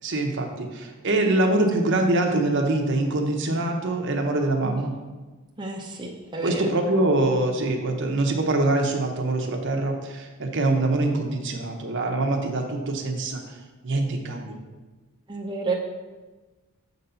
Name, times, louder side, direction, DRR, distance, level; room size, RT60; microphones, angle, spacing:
voice 1, 0.0-4.9 6.4-13.6 13.8-14.5, right 2 dB, 55° right, 3 dB, 0.9 m, -24 dB
voice 2, 5.6-6.6 15.3-15.8, right 3 dB, 20° right, -2 dB, 0.7 m, -30 dB
7.3 x 4.0 x 5.6 m, 1.2 s
head